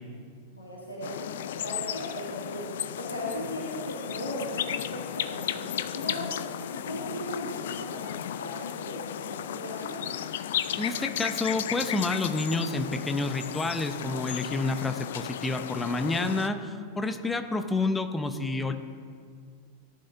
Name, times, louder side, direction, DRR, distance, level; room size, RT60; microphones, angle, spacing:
voice 1, 0.5-1.3 1.6-6.6 6.8-10.0, equal, 80° left, -5 dB, 2.0 m, -37 dB
sound 1, 1.0-16.5, left 10 dB, 60° left, 0.4 m, -34 dB
voice 2, 10.8-16.6 17.0-18.7, left 3 dB, 10° left, 8 dB, 0.8 m, -29 dB
17.5 x 11.0 x 2.6 m, 2.1 s
figure-of-eight pair, 90°, 0 cm